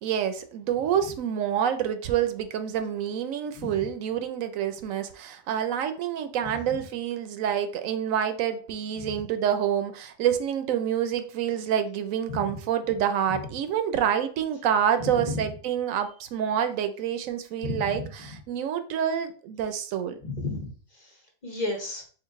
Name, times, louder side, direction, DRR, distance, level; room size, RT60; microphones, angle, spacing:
voice 1, 0.0-20.2, right 9 dB, 80° right, 9 dB, 1.0 m, -27 dB
voice 2, 15.1-15.4 17.6-18.0 20.3-20.7 20.9-21.1 21.4-22.0, left 2 dB, 40° left, 1 dB, 0.9 m, -32 dB
3.8 x 2.5 x 3.6 m, 0.42 s
omnidirectional pair, 1.4 m